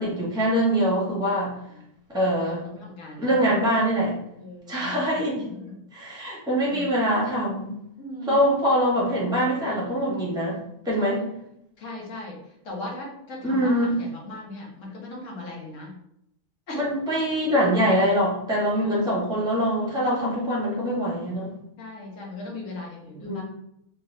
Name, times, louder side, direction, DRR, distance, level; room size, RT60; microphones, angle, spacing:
voice 1, 0.0-1.5 2.1-2.6 3.2-4.1 4.7-5.4 5.9-7.7 8.3-10.6 10.8-11.2 13.4-13.9 16.7-21.5 23.2-23.4, equal, 5° right, -5 dB, 1.2 m, -23 dB
voice 2, 2.4-3.5 4.4-5.8 6.7-6.9 8.0-8.5 11.0-11.2 11.8-15.9 16.7-16.8 18.8-19.1 20.0-20.4 21.8-23.4, left 2 dB, 60° left, -2 dB, 1.5 m, -38 dB
3.8 x 3.5 x 2.7 m, 0.77 s
omnidirectional pair, 1.5 m